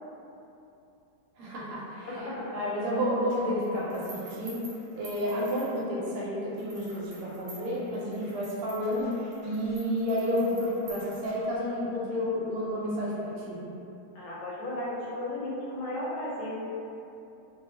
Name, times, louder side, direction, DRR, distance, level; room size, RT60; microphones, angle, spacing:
voice 1, 1.4-2.1 2.5-4.6 4.9-13.6, equal, 85° right, -6 dB, 1.6 m, -30 dB
voice 2, 2.1-2.5 14.1-16.5, left 1 dB, 75° left, -6 dB, 1.5 m, -35 dB
sound 1, 3.3-6.1 6.6-11.7, right 2 dB, 60° right, 1.0 m, -49 dB
3.8 x 2.2 x 2.7 m, 2.8 s
omnidirectional pair, 2.3 m